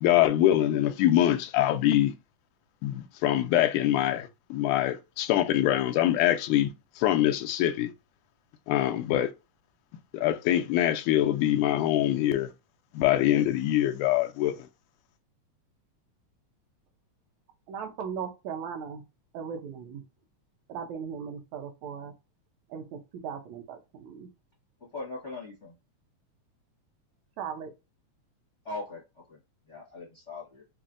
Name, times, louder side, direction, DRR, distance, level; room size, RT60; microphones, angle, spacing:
voice 1, 0.0-2.1 2.8-7.9 8.7-9.3 10.1-12.5 12.9-14.6, left 13 dB, 85° left, 2.0 m, -24 dB
voice 2, 17.7-19.0 19.3-20.0 20.7-22.1 22.7-24.3 27.4-27.7, right 7 dB, 75° right, 2.0 m, -38 dB
voice 3, 24.9-25.7 28.6-29.0 29.3-29.4 29.7-30.6, left 2 dB, 50° left, 0.8 m, -39 dB
5.8 x 2.0 x 2.5 m
omnidirectional pair, 3.4 m